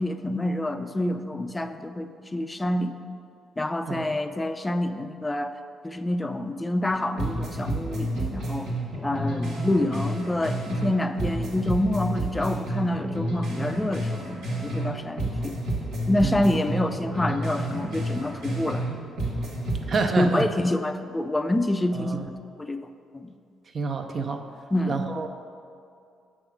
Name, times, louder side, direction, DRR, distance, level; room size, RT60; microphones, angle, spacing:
voice 1, 0.0-3.0 3.6-5.5 5.8-8.7 9.0-15.6 16.1-18.8 20.2-22.9 23.1-23.3 24.7-25.3, left 1 dB, 15° left, 9 dB, 0.4 m, -27 dB
sound 1, 6.9-7.0 7.2-10.9 11.2-14.9 15.2-18.9 19.2-20.0, right 1 dB, 80° right, 1.8 m, -30 dB
voice 2, 19.9-20.5 21.9-22.3 23.7-24.4 24.9-25.3, right 4 dB, 45° right, 5 dB, 0.6 m, -28 dB
7.8 x 3.7 x 6.0 m, 2.4 s
cardioid pair, 95°, 0 cm